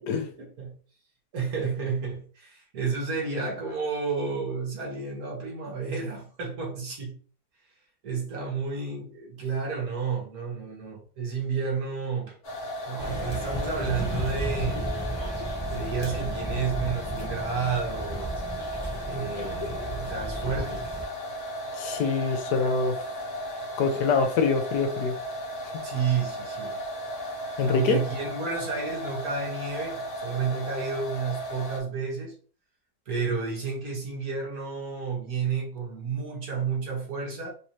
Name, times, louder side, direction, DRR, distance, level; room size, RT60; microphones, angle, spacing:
voice 1, 0.2-0.7 1.3-7.2 7.6-7.7 8.0-12.4 12.8-14.9 15.7-18.4 19.0-20.9 25.8-26.8 27.6-32.4 33.0-37.5, right 5 dB, 60° right, 1.7 m, -31 dB
sound 1, 12.4-31.8, equal, 60° left, 1.6 m, -35 dB
sound 2, 13.0-21.1, right 1 dB, 15° left, 1.0 m, -34 dB
voice 2, 21.7-23.0 23.8-25.1 27.6-28.0, left 5 dB, 75° left, 1.1 m, -25 dB
4.1 x 2.6 x 3.0 m
omnidirectional pair, 1.8 m